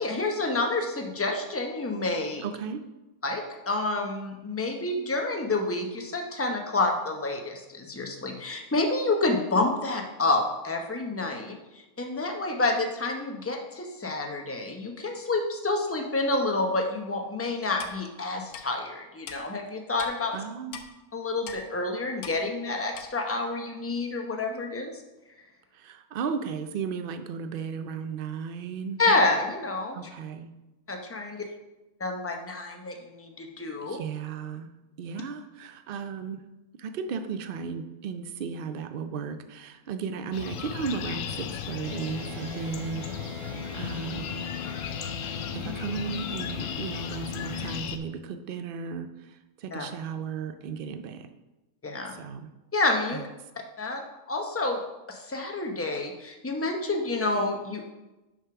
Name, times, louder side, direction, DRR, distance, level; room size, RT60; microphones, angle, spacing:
voice 1, 0.0-2.4 3.2-20.3 21.1-24.9 29.0-30.0 30.9-31.4 32.0-34.0 45.6-45.7 49.7-49.9 51.8-52.2 52.7-53.2 53.8-54.0 54.3-54.8 55.1-57.9, left 2 dB, 15° left, 3 dB, 0.6 m, -28 dB
voice 2, 2.4-2.8 20.3-20.8 25.7-29.0 29.9-30.5 33.8-34.7 35.0-36.4 36.8-44.3 45.5-51.3 52.1-52.5 53.1-53.3, right 6 dB, 60° right, 9 dB, 0.6 m, -35 dB
Clock, 17.8-18.0 18.5-18.6 19.3-19.4 20.0-20.1 20.7-20.9 21.5-21.6 22.2-22.4 22.9-23.1, left 7 dB, 85° left, 1.2 m, -40 dB
sound 1, 40.3-48.0, left 9 dB, 70° left, 0.9 m, -36 dB
sound 2, 41.8-47.8, left 3 dB, 25° right, 0.9 m, -40 dB
6.3 x 5.2 x 5.8 m, 1.0 s
omnidirectional pair, 1.5 m